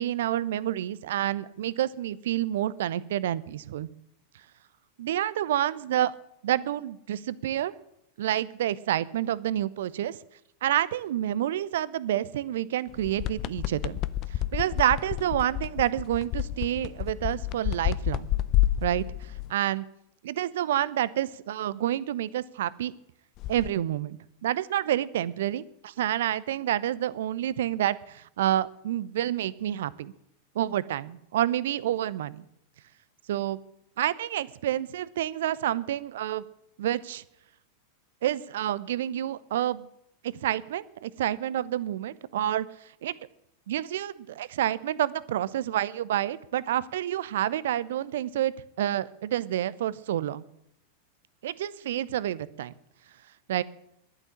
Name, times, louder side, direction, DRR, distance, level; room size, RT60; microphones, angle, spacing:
voice 1, 0.0-3.9 5.0-6.1 6.4-7.7 8.2-10.2 10.6-14.0 14.5-18.3 18.8-19.0 19.5-19.8 20.2-22.9 23.5-30.1 30.5-32.4 33.3-33.6 34.0-36.4 36.8-37.2 38.2-39.9 40.4-42.7 43.0-43.1 43.7-50.4 51.4-52.7 53.5-53.6, right 12 dB, 60° right, 19 dB, 0.7 m, -28 dB
sound 1, 12.9-19.5 23.4-23.7, left 14 dB, 40° left, 0.5 m, -30 dB
11.5 x 9.9 x 9.9 m, 0.78 s
figure-of-eight pair, 90°, 0 cm